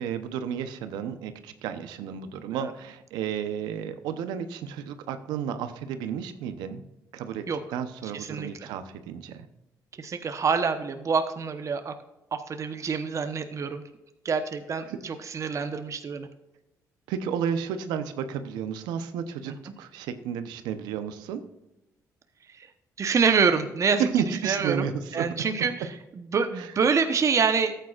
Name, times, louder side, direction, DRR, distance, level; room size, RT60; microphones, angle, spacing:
voice 1, 0.0-6.8 7.1-7.4 7.7-9.5 14.9-15.0 15.5-15.6 17.1-21.4 24.0-25.3 25.6-25.7 26.6-26.7, right 8 dB, 90° right, 10 dB, 0.8 m, -32 dB
voice 2, 8.1-8.7 10.0-11.9 12.3-13.8 14.2-16.3 19.5-19.6 23.0-24.1 24.4-24.9 25.1-25.9 26.3-27.8, right 5 dB, 45° right, 7 dB, 1.0 m, -26 dB
13.5 x 9.1 x 2.5 m, 0.96 s
supercardioid pair, 70°, 7 cm